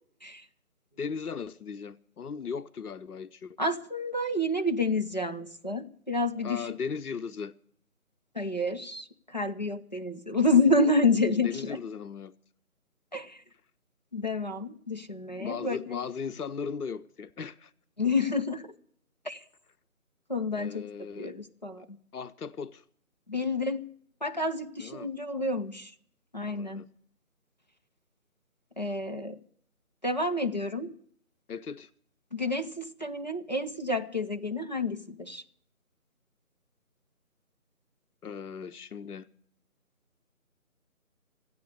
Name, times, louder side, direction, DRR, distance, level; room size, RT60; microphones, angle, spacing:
voice 1, 1.0-3.6 6.4-7.5 11.4-12.3 15.4-17.7 20.6-21.3 22.1-22.8 24.8-25.1 26.5-26.9 31.5-31.9 38.2-39.3, left 6 dB, 90° left, 0.8 m, -37 dB
voice 2, 3.6-6.7 8.3-11.8 13.1-13.4 14.1-16.0 18.0-18.7 19.2-19.4 20.3-20.8 21.2-22.0 23.3-23.8 24.2-25.9 26.3-26.8 28.8-29.4 30.0-30.9 32.3-35.4, left 2 dB, 30° left, 0.7 m, -29 dB
14.5 x 9.6 x 9.3 m
figure-of-eight pair, 175°, 44 cm